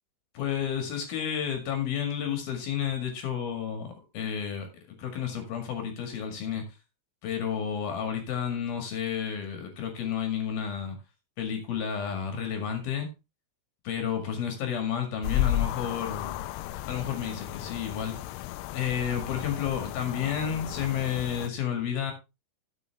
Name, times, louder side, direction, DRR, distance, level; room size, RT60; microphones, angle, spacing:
voice 1, 0.3-6.6 7.2-11.0 11.4-13.1 13.8-16.4 16.9-18.2 18.7-22.1, left 8 dB, 60° left, 5 dB, 3.4 m, -31 dB
sound 1, 15.2-21.5, left 13 dB, 80° left, 2.9 m, -33 dB
12.5 x 7.3 x 3.5 m, 0.26 s
omnidirectional pair, 5.6 m